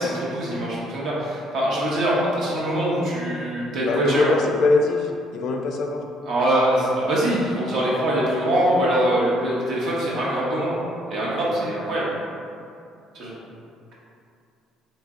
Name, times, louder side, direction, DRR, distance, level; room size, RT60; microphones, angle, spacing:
voice 1, 0.0-4.3 6.2-10.7 11.1-12.1 13.1-13.3, right 1 dB, 65° right, -6 dB, 1.0 m, -23 dB
voice 2, 3.9-6.1, left 3 dB, 65° left, 2 dB, 0.4 m, -22 dB
3.0 x 2.6 x 3.6 m, 2.5 s
cardioid pair, 95°, 0 cm